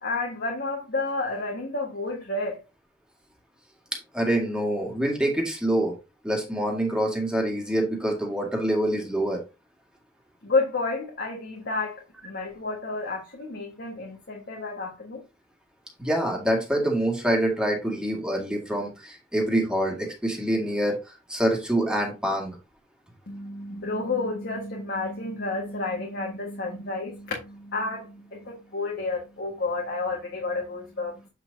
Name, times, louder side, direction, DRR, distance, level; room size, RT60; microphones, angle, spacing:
voice 1, 0.0-2.6 10.4-12.0 12.2-15.2 23.3-31.1, left 3 dB, 60° left, 1.6 m, -30 dB
voice 2, 4.1-5.9 6.2-9.4 16.0-21.0 21.3-22.6, right 1 dB, 5° right, 2.0 m, -25 dB
7.8 x 5.9 x 2.7 m
head